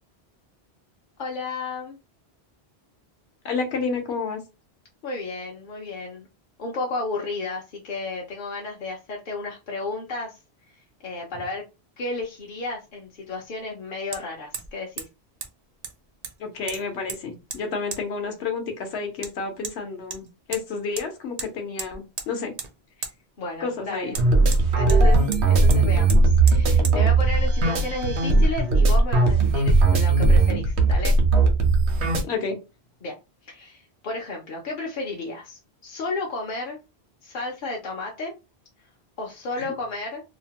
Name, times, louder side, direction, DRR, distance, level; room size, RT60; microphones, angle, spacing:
voice 1, 1.2-2.0 5.0-6.3 6.6-10.4 10.7-10.8 11.0-11.6 12.0-15.1 23.4-24.1 24.8-31.2 33.0-33.1 33.4-36.8 37.2-38.3 39.2-40.2, left 2 dB, 55° left, -1 dB, 0.7 m, -33 dB
voice 2, 3.4-4.4 16.4-22.5 23.6-24.2 32.2-32.6 39.6-39.7, left 4 dB, 75° left, 4 dB, 1.0 m, -30 dB
Hammer, 12.2-12.3 14.1-14.2 14.5-14.7 15.0-15.1 15.4-15.5 15.8-16.4 16.7-17.2 17.5-17.6 17.9-18.0 19.2-19.3 19.6-19.8 20.1-20.6 21.0-21.1 21.4-21.5 21.8-22.3 22.6-22.7 23.0-23.1 24.1-25.0 25.3-25.4 25.7-25.8 26.1-26.2 26.5-26.6 26.8-27.0, right 5 dB, 55° right, 0.5 m, -34 dB
sound 1, 24.1-32.2, right 3 dB, 85° right, 1.0 m, -18 dB
2.8 x 2.1 x 2.8 m, 0.27 s
omnidirectional pair, 1.1 m